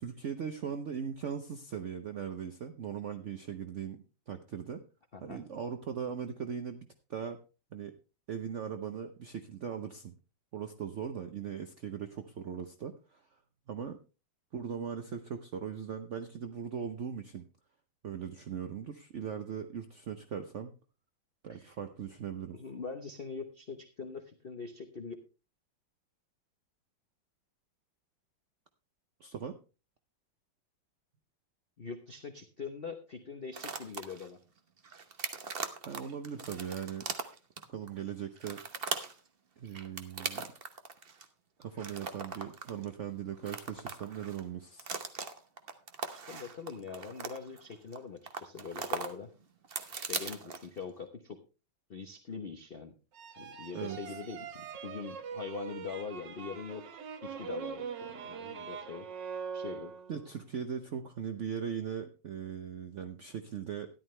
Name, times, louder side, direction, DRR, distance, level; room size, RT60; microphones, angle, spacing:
voice 1, 0.0-4.8 5.2-7.4 7.7-7.9 8.3-10.1 10.5-13.4 13.7-14.0 14.5-17.4 18.0-20.7 21.4-22.6 29.2-29.5 35.9-37.1 37.7-38.6 39.6-40.5 41.6-44.9 53.7-54.2 60.1-63.9, right 7 dB, 80° right, 8 dB, 0.6 m, -39 dB
voice 2, 22.5-25.1 31.8-34.4 46.1-49.3 50.1-51.4 51.9-52.9 53.4-56.8 57.2-59.1 59.5-59.9, left 5 dB, 45° left, 6 dB, 0.7 m, -43 dB
sound 1, 33.5-34.3 34.8-37.9 38.4-39.2 39.7-41.2 41.6-42.9 43.3-44.4 44.8-48.0 48.3-49.1 49.4-50.8, right 5 dB, 45° right, 0.8 m, -39 dB
sound 2, 53.1-60.3, right 7 dB, 60° right, 1.6 m, -42 dB
13.0 x 11.0 x 3.2 m, 0.32 s
omnidirectional pair, 2.3 m